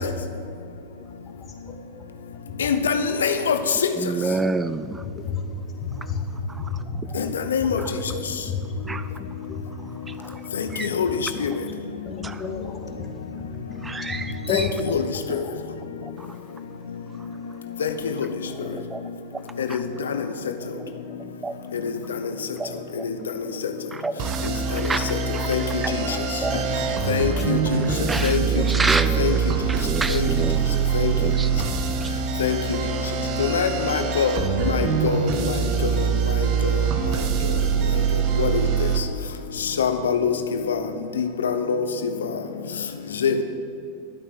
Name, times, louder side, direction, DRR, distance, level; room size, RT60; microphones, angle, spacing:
voice 1, 2.6-3.5 7.5-7.8 11.0-11.1 11.4-11.5 14.5-14.6 14.9-15.0 17.8-17.9 25.5-25.6 27.1-27.6 28.2-28.4 29.2-29.3 30.1-30.2 30.9-31.1 32.4-32.6 33.5-34.4 34.7-35.2 38.4-38.5 39.8-40.3 41.4-41.8 43.2-43.3, left 7 dB, 85° left, 8 dB, 0.8 m, -22 dB
voice 2, 4.0-5.0 7.1-7.3 7.8-7.9 8.9-9.1 10.1-10.4 10.7-10.9 12.2-12.4 13.8-14.7 16.2-16.3 18.7-19.0 19.7-19.8 20.7-20.8 21.4-21.5 22.6-23.1 23.5-23.6 23.9-25.5 25.8-26.7 28.1-30.9 31.1-31.7 32.0-32.1, right 3 dB, 15° right, 12 dB, 0.3 m, -29 dB
voice 3, 4.7-5.4 6.1-7.0 7.6-7.8 8.4-9.7 12.0-13.1 13.4-13.5 14.2-14.7, left 5 dB, 25° left, 2 dB, 2.0 m, -31 dB
sound 1, 24.2-39.0, right 6 dB, 50° right, 1.4 m, -24 dB
11.5 x 9.0 x 6.1 m, 2.6 s
hypercardioid pair, 105°, 0 cm